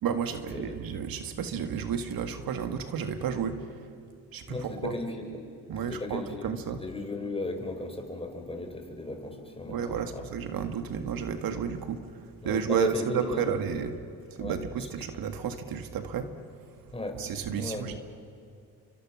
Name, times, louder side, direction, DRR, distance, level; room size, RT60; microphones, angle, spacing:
voice 1, 0.0-3.7 4.3-5.0 5.7-6.8 9.7-12.0 12.4-13.9 14.3-16.3 17.2-18.0, right 7 dB, 70° right, 8 dB, 1.9 m, -32 dB
voice 2, 4.5-5.4 5.8-6.5 6.8-10.2 12.4-13.5 14.4-14.9 16.9-17.2 17.6-17.9, left 2 dB, 15° left, 4 dB, 4.7 m, -36 dB
30.0 x 24.5 x 6.2 m, 2.5 s
cardioid pair, 85°, 36 cm